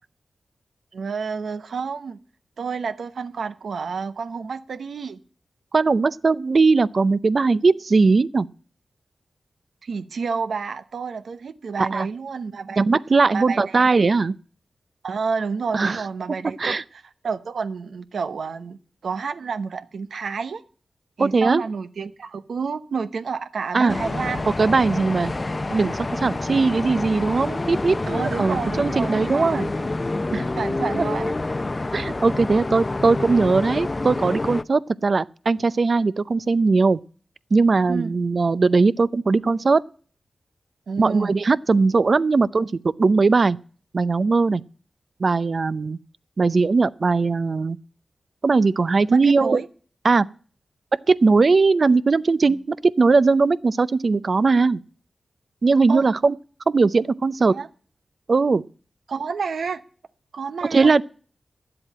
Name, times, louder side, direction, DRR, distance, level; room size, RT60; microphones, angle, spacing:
voice 1, 0.9-2.2 2.6-5.2 9.8-12.9 13.3-13.8 15.0-20.6 21.2-24.4 28.1-30.0 30.6-31.3 37.9-38.1 40.9-41.3 49.1-49.7 52.5-52.6 55.9-56.1 57.5-57.7 59.1-59.8 60.3-60.9, right 5 dB, 80° right, 0.9 m, -30 dB
voice 2, 5.7-8.5 11.8-12.1 12.8-14.3 15.7-16.0 16.6-16.8 21.2-21.6 23.7-24.0 24.6-25.3 25.7-29.7 30.3-30.5 31.0-31.1 31.9-37.0 37.5-39.8 41.0-43.6 43.9-44.6 45.2-46.0 46.4-47.8 48.4-49.6 50.0-50.3 51.1-54.8 55.6-56.3 56.7-57.6 58.3-58.6 60.7-61.0, right 4 dB, 60° right, 0.6 m, -19 dB
sound 1, 23.9-34.6, left 2 dB, 40° left, 0.6 m, -27 dB
11.0 x 7.8 x 8.8 m
cardioid pair, 40°, 0 cm